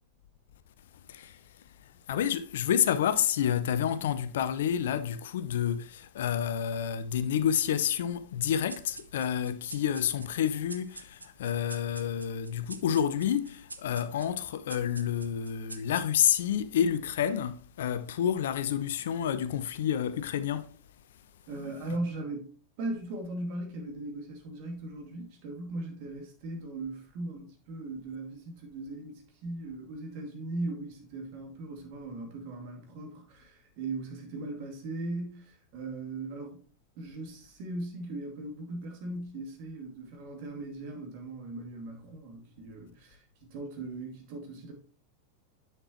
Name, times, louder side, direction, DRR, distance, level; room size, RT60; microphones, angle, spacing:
voice 1, 2.1-20.8, left 9 dB, 60° left, 0.5 m, -29 dB
sound 1, 8.7-16.4, right 3 dB, 80° right, 0.6 m, -48 dB
voice 2, 21.5-22.5 22.8-36.6 37.0-44.7, right 2 dB, 45° right, 2.4 m, -39 dB
9.8 x 5.9 x 3.0 m
figure-of-eight pair, 90°, 0 cm